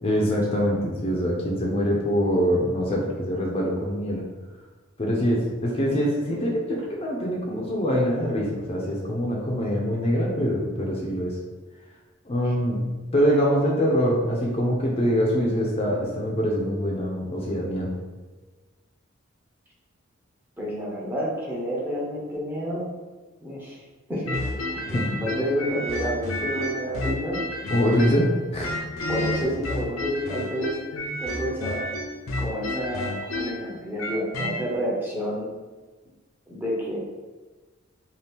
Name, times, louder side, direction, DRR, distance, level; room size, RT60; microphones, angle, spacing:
voice 1, 0.0-4.2 5.0-11.4 12.3-12.8 13.1-17.9 24.9-25.1 27.7-28.3 28.5-28.7, equal, 30° left, -2 dB, 0.5 m, -24 dB
voice 2, 20.6-22.9 23.4-23.8 24.1-27.4 29.1-30.8 31.2-31.9 32.4-35.5 36.5-37.0, equal, 10° right, -5 dB, 0.6 m, -29 dB
sound 1, 24.3-28.3 28.6-34.6, left 1 dB, 80° left, 0.5 m, -30 dB
2.8 x 2.4 x 3.3 m, 1.3 s
head